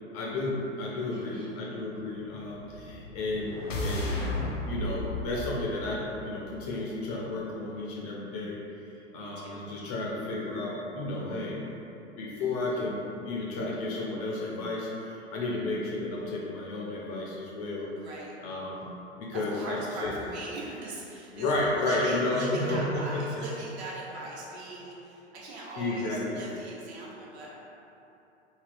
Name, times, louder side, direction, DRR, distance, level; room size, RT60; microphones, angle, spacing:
voice 1, 0.1-4.2 4.7-8.6 8.9-11.6 12.2-17.9 18.4-18.8 19.2-20.2 21.3-23.2 25.8-26.4, left 2 dB, 35° left, -3 dB, 0.4 m, -32 dB
voice 2, 1.1-1.6 9.2-9.8 12.4-12.8 18.0-18.3 19.3-27.6, right 2 dB, 60° right, -4 dB, 0.8 m, -40 dB
sound 1, 2.5-6.8, left 1 dB, 85° left, 0.6 m, -34 dB
3.3 x 2.7 x 2.5 m, 2.9 s
figure-of-eight pair, 90°, 37 cm